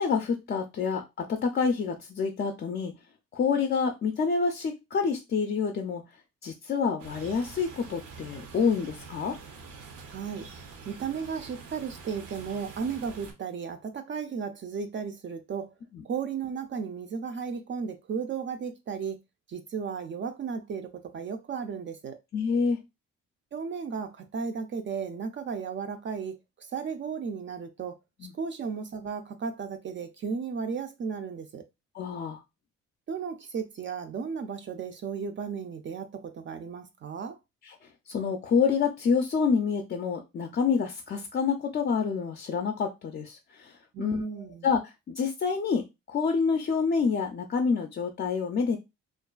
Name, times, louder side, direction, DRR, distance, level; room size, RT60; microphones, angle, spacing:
voice 1, 0.0-2.9 3.3-6.0 6.4-9.4 15.9-16.0 22.3-22.8 28.2-28.3 31.9-32.4 37.7-48.8, left 5 dB, 35° left, 0.4 m, -28 dB
sound 1, 7.0-13.3, right 4 dB, 85° right, 0.7 m, -46 dB
voice 2, 10.1-10.5 10.9-15.7 16.0-19.2 19.5-20.9 21.1-22.2 23.5-28.0 28.3-31.6 33.1-37.4 43.9-44.7, right 6 dB, 40° right, 0.4 m, -34 dB
2.4 x 2.2 x 2.3 m
cardioid pair, 90°, 30 cm